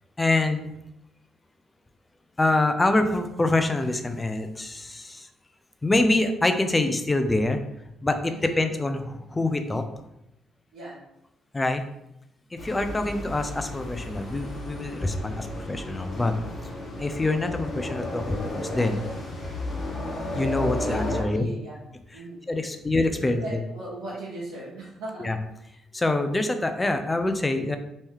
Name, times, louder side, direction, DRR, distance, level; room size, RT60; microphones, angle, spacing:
voice 1, 0.2-0.6 2.4-5.3 5.8-7.6 8.0-9.8 11.5-11.8 12.5-16.3 17.0-19.0 20.3-21.4 22.5-23.6 25.2-25.4 25.9-27.8, left 2 dB, 20° left, 7 dB, 0.5 m, -25 dB
voice 2, 8.2-8.7 10.7-11.0 12.5-12.9 20.7-21.8 22.1-22.4 22.7-22.9 23.2-25.3, right 2 dB, 75° right, -8 dB, 0.9 m, -38 dB
sound 1, 12.6-21.2, left 2 dB, 45° left, 1.3 m, -33 dB
3.0 x 2.7 x 3.7 m, 0.84 s
hypercardioid pair, 55°, 0 cm